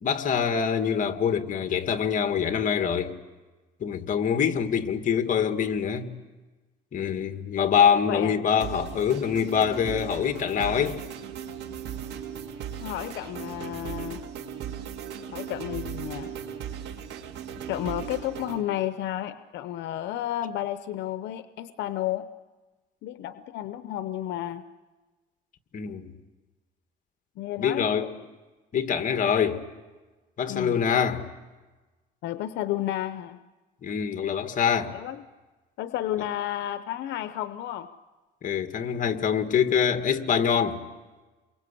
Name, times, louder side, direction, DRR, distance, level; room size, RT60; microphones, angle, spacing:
voice 1, 0.0-3.2 3.8-6.1 6.9-11.0 25.7-26.1 27.6-28.1 28.7-29.6 30.4-31.3 33.8-35.0 38.4-40.8, left 7 dB, 50° left, 2.0 m, -25 dB
sound 1, 8.6-18.6, right 8 dB, 85° right, 2.4 m, -37 dB
voice 2, 12.8-14.2 15.3-16.4 17.7-22.2 23.0-24.6 27.4-28.1 30.5-30.8 32.2-33.4 34.9-35.2 35.8-37.9, left 12 dB, 85° left, 0.8 m, -32 dB
28.5 x 23.0 x 8.5 m
cardioid pair, 110°, 18 cm